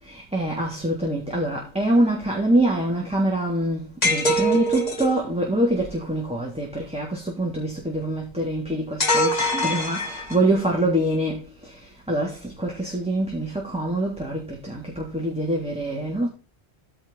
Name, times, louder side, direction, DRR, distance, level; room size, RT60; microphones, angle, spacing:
voice 1, 0.0-16.3, right 1 dB, 5° right, 3.4 m, -25 dB
sound 1, 4.0-5.2 9.0-10.6, equal, 35° left, 1.8 m, -23 dB
14.5 x 6.1 x 4.2 m
omnidirectional pair, 1.1 m